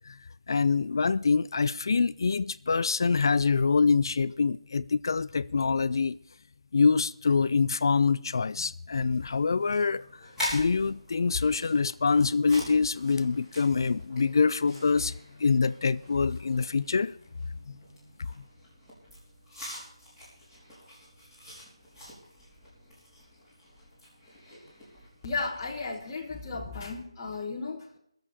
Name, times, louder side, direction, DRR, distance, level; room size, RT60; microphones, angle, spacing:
voice 1, 0.5-6.2 6.7-10.2 10.5-15.1 15.4-17.1 17.7-17.8, left 4 dB, 50° left, 0.4 m, -25 dB
sound 1, 8.9-26.2, left 1 dB, 5° right, 5.0 m, -44 dB
voice 2, 25.2-28.0, left 3 dB, 20° left, 1.5 m, -34 dB
20.0 x 7.6 x 4.9 m
figure-of-eight pair, 170°, 3 cm